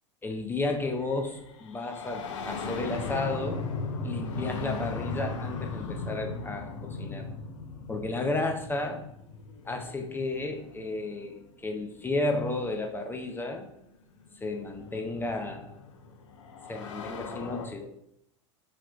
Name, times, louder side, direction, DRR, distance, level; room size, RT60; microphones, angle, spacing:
voice 1, 0.2-3.6 4.0-7.3 7.9-9.0 9.7-13.7 14.4-15.8 16.7-17.9, left 2 dB, 15° left, 3 dB, 0.6 m, -33 dB
sound 1, 0.9-11.5 12.8-12.9 13.9-17.7, left 4 dB, 75° left, 0.6 m, -38 dB
5.7 x 3.0 x 2.6 m, 0.76 s
hypercardioid pair, 85°, 16 cm